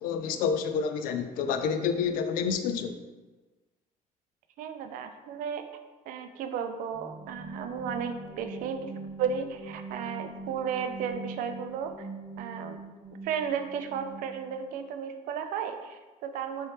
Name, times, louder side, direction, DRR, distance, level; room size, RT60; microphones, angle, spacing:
voice 1, 0.0-3.0, left 6 dB, 75° left, 8 dB, 0.4 m, -28 dB
voice 2, 4.6-5.7 6.1-12.1 12.4-12.8 13.2-16.7, right 7 dB, 70° right, 7 dB, 0.4 m, -34 dB
sound 1, 6.9-14.7, right 3 dB, 15° right, 1.3 m, -43 dB
4.1 x 3.1 x 3.2 m, 1.2 s
cardioid pair, 130°, 15 cm